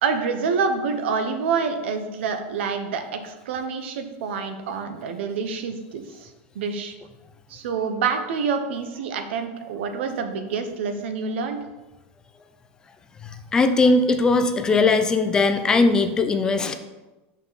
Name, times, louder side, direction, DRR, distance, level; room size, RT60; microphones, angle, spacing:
voice 1, 0.0-6.3 6.5-6.9 7.5-11.6, right 5 dB, 80° right, 7 dB, 0.9 m, -27 dB
voice 2, 13.2-16.7, left 3 dB, 10° left, 8 dB, 0.3 m, -19 dB
5.9 x 5.4 x 4.0 m, 1.1 s
supercardioid pair, 175°, 6 cm